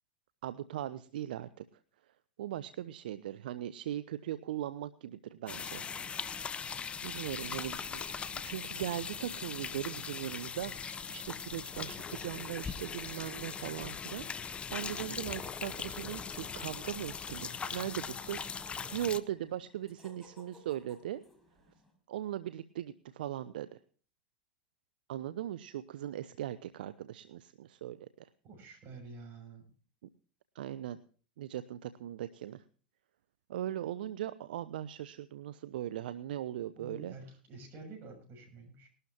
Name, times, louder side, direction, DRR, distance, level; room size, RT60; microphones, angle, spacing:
voice 1, 0.4-1.6 2.4-5.8 7.0-8.0 8.4-21.2 22.1-23.8 25.1-28.3 30.5-31.0 31.4-32.6 33.5-37.1, right 12 dB, 75° right, 15 dB, 0.5 m, -39 dB
sound 1, 5.5-19.2, left 6 dB, 20° left, 0.7 m, -40 dB
sound 2, 15.8-21.9, left 1 dB, ahead, 6.0 m, -60 dB
voice 2, 28.4-29.6 36.8-38.9, right 3 dB, 45° right, 4 dB, 6.7 m, -49 dB
20.5 x 12.0 x 2.8 m, 0.40 s
hypercardioid pair, 100°, 5 cm